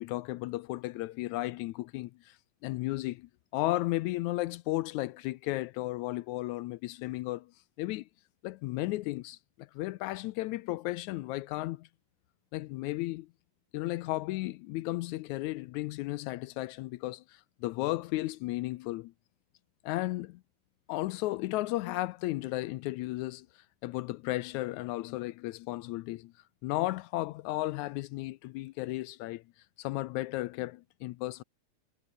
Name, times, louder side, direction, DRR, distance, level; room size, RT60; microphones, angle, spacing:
voice 1, 0.0-2.4 2.6-7.5 7.8-8.1 8.4-11.9 12.5-13.3 13.7-19.1 19.8-20.4 20.9-26.3 26.6-29.4 29.8-31.4, left 18 dB, 80° left, 1.9 m, -34 dB
omnidirectional pair, 3.5 m